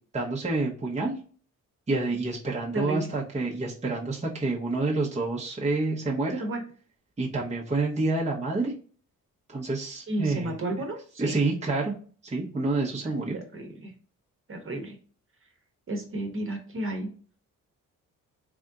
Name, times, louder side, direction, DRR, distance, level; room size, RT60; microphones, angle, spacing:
voice 1, 0.1-1.2 1.9-6.4 7.2-8.7 9.5-10.5 11.2-11.9 12.2-13.4, right 3 dB, 20° right, -3 dB, 1.0 m, -28 dB
voice 2, 2.7-3.1 6.4-6.6 10.1-11.4 13.0-13.9 14.5-15.0 15.9-17.1, right 1 dB, 40° right, 2 dB, 1.2 m, -33 dB
3.5 x 2.6 x 3.6 m, 0.42 s
cardioid pair, 75°, 33 cm